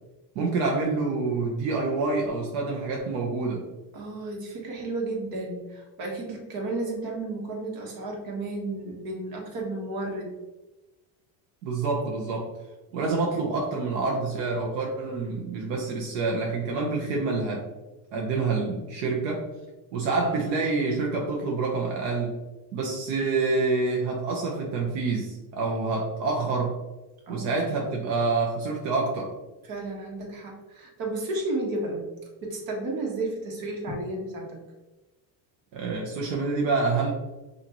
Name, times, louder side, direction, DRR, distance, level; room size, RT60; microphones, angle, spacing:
voice 1, 0.3-3.7 11.6-12.5 12.9-17.6 18.1-19.5 19.9-22.4 22.7-26.8 27.3-29.3 35.7-37.1, right 3 dB, 80° right, -1 dB, 1.0 m, -27 dB
voice 2, 3.9-10.3 27.3-27.6 29.6-32.0 32.4-34.6, right 2 dB, 50° right, -1 dB, 1.4 m, -32 dB
5.9 x 2.7 x 3.0 m, 1.1 s
cardioid pair, 145°, 44 cm